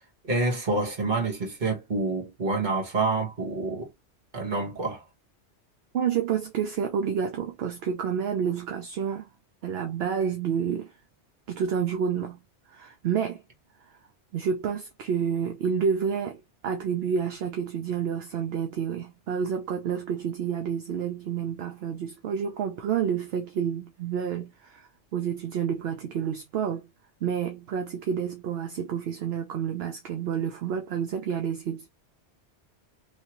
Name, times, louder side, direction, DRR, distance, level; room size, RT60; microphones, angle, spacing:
voice 1, 0.2-3.9 4.3-5.0, right 3 dB, 40° right, 1.3 m, -27 dB
voice 2, 5.9-9.3 9.6-10.9 11.5-12.4 12.7-13.4 14.3-26.9 27.2-31.9, right 7 dB, 65° right, 0.8 m, -29 dB
3.2 x 2.7 x 2.8 m
omnidirectional pair, 1.2 m